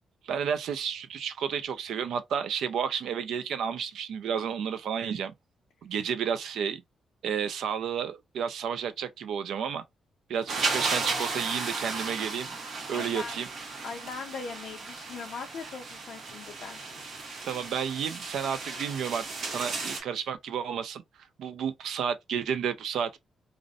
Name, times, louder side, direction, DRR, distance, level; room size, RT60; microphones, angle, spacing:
voice 1, 0.2-5.3 5.8-6.8 7.2-9.8 10.3-12.5 12.9-13.5 17.5-21.0 21.4-23.2, right 7 dB, 80° right, 0.3 m, -31 dB
sound 1, 10.5-20.0, right 3 dB, 60° right, 0.9 m, -34 dB
voice 2, 12.9-13.4 13.8-16.8, left 5 dB, 70° left, 0.4 m, -40 dB
2.5 x 2.0 x 2.5 m
cardioid pair, 95°, 0 cm